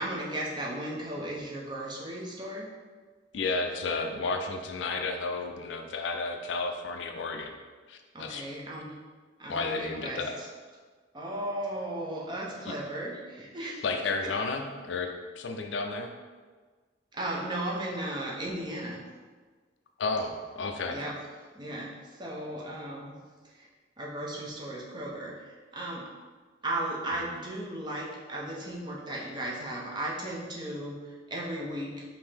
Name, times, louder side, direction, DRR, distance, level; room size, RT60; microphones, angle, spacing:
voice 1, 0.0-2.7 8.1-9.0 9.4-10.5 11.1-13.8 14.2-14.3 17.1-19.0 20.9-21.2 21.5-23.2 23.5-23.7 24.0-26.1 26.6-32.0, right 1 dB, 25° right, -3 dB, 0.7 m, -36 dB
voice 2, 3.3-7.5 7.9-8.5 9.5-10.4 12.7-12.8 13.8-15.1 15.4-16.1 20.0-21.0, left 3 dB, 70° left, 4 dB, 0.4 m, -32 dB
5.3 x 2.8 x 3.4 m, 1.4 s
head